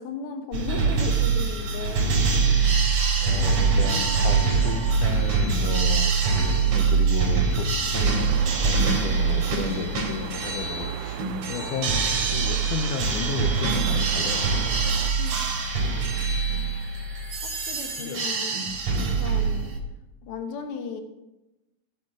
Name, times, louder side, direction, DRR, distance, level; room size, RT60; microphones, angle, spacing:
voice 1, 0.0-2.0 15.2-15.4 16.5-16.7 17.5-18.5 19.0-19.7 20.2-21.0, left 5 dB, 60° left, 5 dB, 1.8 m, -35 dB
sound 1, 0.5-19.8, right 5 dB, 60° right, 3.1 m, -24 dB
voice 2, 3.2-6.1 6.6-8.2 8.6-12.1 12.3-14.5 14.8-14.9 15.6-15.7 16.5-16.8 18.0-18.3 19.0-19.1, left 6 dB, 85° left, 8 dB, 2.3 m, -34 dB
sound 2, 8.1-15.1, right 10 dB, 85° right, 2.0 m, -37 dB
14.0 x 7.0 x 4.9 m, 0.98 s
omnidirectional pair, 3.5 m